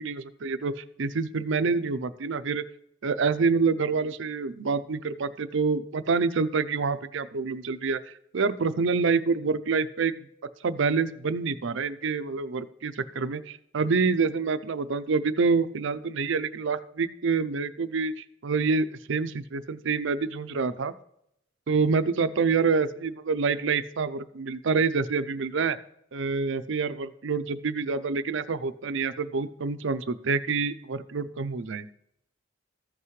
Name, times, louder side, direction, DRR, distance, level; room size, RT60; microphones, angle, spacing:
voice 1, 0.0-2.6 3.0-10.1 10.6-20.9 21.7-25.8 26.1-31.9, right 4 dB, 65° right, 13 dB, 0.5 m, -27 dB
14.5 x 5.7 x 3.2 m, 0.74 s
head